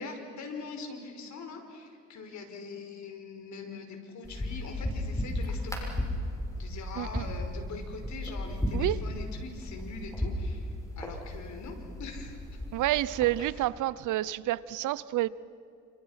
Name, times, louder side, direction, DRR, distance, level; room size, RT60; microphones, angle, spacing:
voice 1, 0.0-5.9 6.6-12.4 13.4-13.6, left 4 dB, 70° left, 4 dB, 5.2 m, -42 dB
sound 1, 4.2-13.4, left 1 dB, 10° left, 6.8 m, -35 dB
voice 2, 7.0-7.3 8.7-9.0 12.7-15.3, right 15 dB, 85° right, 19 dB, 0.8 m, -29 dB
29.5 x 28.0 x 5.8 m, 2.7 s
cardioid pair, 90°, 30 cm